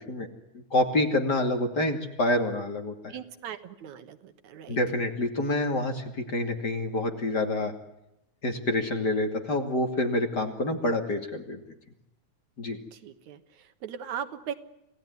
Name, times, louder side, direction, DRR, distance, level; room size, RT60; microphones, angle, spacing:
voice 1, 0.5-3.1 4.7-7.7 8.4-11.6 12.6-12.8, left 1 dB, 35° left, 4 dB, 2.9 m, -27 dB
voice 2, 3.1-4.8 12.7-14.5, right 8 dB, 80° right, 9 dB, 2.7 m, -39 dB
28.0 x 18.0 x 9.6 m, 0.86 s
omnidirectional pair, 3.3 m